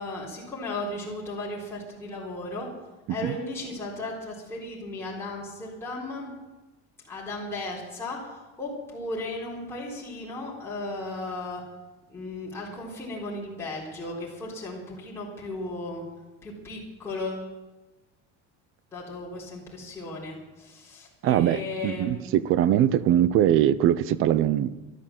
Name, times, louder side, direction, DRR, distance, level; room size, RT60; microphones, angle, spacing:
voice 1, 0.0-2.7 3.1-6.3 7.0-11.6 12.1-16.0 16.4-17.5 18.9-22.2, left 2 dB, 10° left, -7 dB, 3.9 m, -35 dB
voice 2, 21.2-24.7, right 11 dB, 45° right, 17 dB, 0.6 m, -22 dB
13.0 x 12.5 x 7.6 m, 1.1 s
cardioid pair, 170°, 31 cm